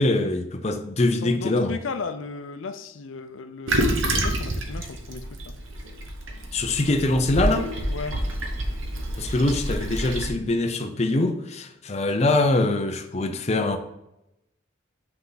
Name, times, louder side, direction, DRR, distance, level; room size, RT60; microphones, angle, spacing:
voice 1, 0.0-1.8 6.5-7.7 9.2-13.8, left 2 dB, 35° left, 0.6 m, -23 dB
voice 2, 1.2-5.6 7.9-8.2, left 4 dB, 85° left, 0.6 m, -35 dB
Toilet flush, 3.7-10.3, right 1 dB, 85° right, 1.0 m, -28 dB
5.9 x 5.5 x 4.0 m
head